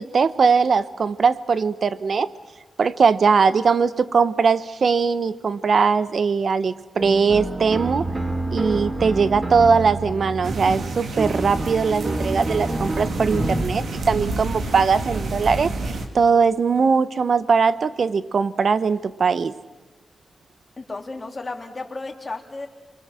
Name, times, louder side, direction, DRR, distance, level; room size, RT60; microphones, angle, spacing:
voice 1, 0.0-2.3 2.8-8.1 8.5-19.5, right 5 dB, 60° right, 15 dB, 1.0 m, -20 dB
sound 1, 7.0-13.6, right 2 dB, 30° right, 2.3 m, -28 dB
sound 2, 10.4-16.1, right 2 dB, 85° right, 3.0 m, -29 dB
voice 2, 20.8-22.7, left 3 dB, 35° left, 2 dB, 3.5 m, -33 dB
28.5 x 23.5 x 7.6 m, 1.2 s
cardioid pair, 85°, 0 cm